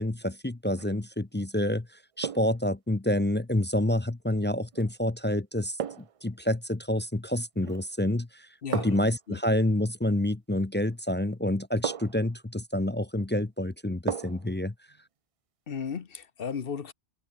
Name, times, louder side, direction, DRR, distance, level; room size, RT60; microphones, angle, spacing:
voice 1, 0.0-1.9 2.2-5.8 6.2-14.7, left 1 dB, 15° left, 0.5 m, -28 dB
sound 1, 0.6-1.0 2.2-2.6 4.7-4.9 5.8-6.2 7.6-8.0 8.7-9.2 10.8-10.9 11.8-12.3 14.1-14.5 14.9-15.0, right 8 dB, 45° right, 0.4 m, -35 dB
voice 2, 15.7-16.9, left 6 dB, 60° left, 1.2 m, -35 dB
omnidirectional pair, 1.1 m